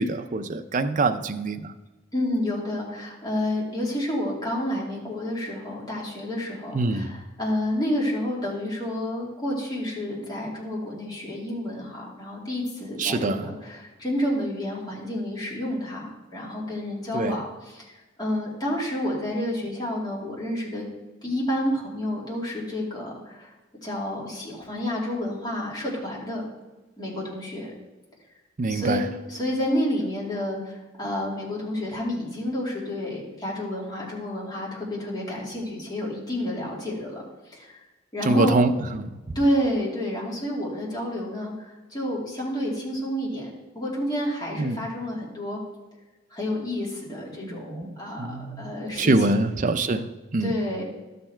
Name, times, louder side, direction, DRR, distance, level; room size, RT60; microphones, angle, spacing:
voice 1, 0.0-1.7 6.7-7.2 13.0-13.5 17.1-17.4 28.6-29.1 38.2-39.4 44.6-44.8 47.4-50.5, right 2 dB, 40° right, 8 dB, 0.6 m, -25 dB
voice 2, 2.1-17.9 18.2-20.8 21.2-23.5 23.8-26.4 27.0-27.7 28.7-29.0 29.3-37.8 38.1-38.6 39.3-43.5 43.7-45.6 46.3-49.4 50.4-50.8, left 1 dB, 20° left, -5 dB, 2.3 m, -29 dB
12.5 x 6.8 x 4.4 m, 1.1 s
head